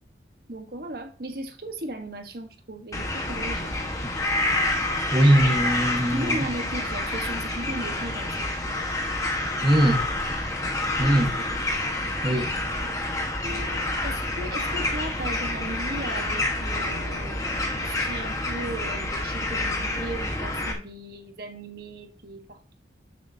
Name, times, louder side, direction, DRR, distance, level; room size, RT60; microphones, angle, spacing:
voice 1, 0.5-3.9 5.3-5.5 6.0-8.9 11.1-11.6 12.8-22.8, right 1 dB, 55° right, 1.3 m, -37 dB
sound 1, 2.9-20.7, left 2 dB, 20° left, 1.3 m, -28 dB
voice 2, 5.1-6.4 9.6-10.0 11.0-11.3 12.2-12.5, right 1 dB, 25° right, 1.3 m, -21 dB
12.5 x 7.6 x 2.8 m
head